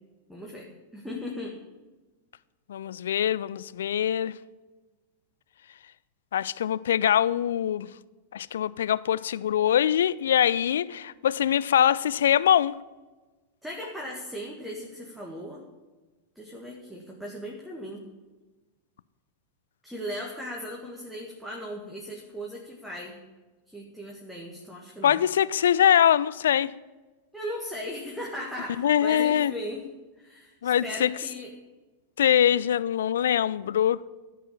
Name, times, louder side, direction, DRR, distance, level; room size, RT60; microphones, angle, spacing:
voice 1, 0.3-1.6 13.6-15.6 16.4-18.0 19.8-23.2 23.7-25.2 27.3-29.8 30.2-31.5, equal, ahead, 1.9 m, -37 dB
voice 2, 2.7-4.3 6.3-7.9 8.3-12.8 25.0-26.7 28.8-29.5 30.6-31.1 32.2-34.0, left 10 dB, 60° left, 0.4 m, -23 dB
14.0 x 5.5 x 8.6 m
figure-of-eight pair, 90°, 0 cm